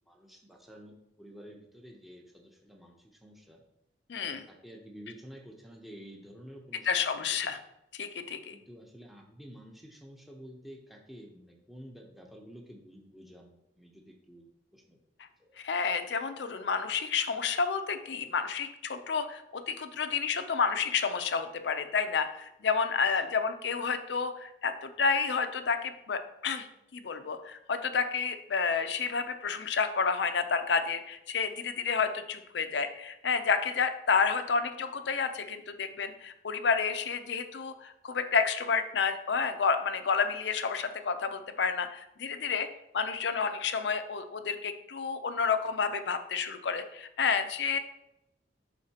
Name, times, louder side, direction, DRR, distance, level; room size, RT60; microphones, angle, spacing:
voice 1, 0.1-3.6 4.2-7.2 8.5-15.0 15.4-15.6 23.1-23.3, equal, ahead, 0 dB, 0.8 m, -50 dB
voice 2, 4.1-4.4 6.8-7.6 7.9-8.5 15.6-42.7 42.9-47.8, left 5 dB, 75° left, 9 dB, 0.6 m, -30 dB
11.5 x 3.9 x 2.9 m, 0.87 s
head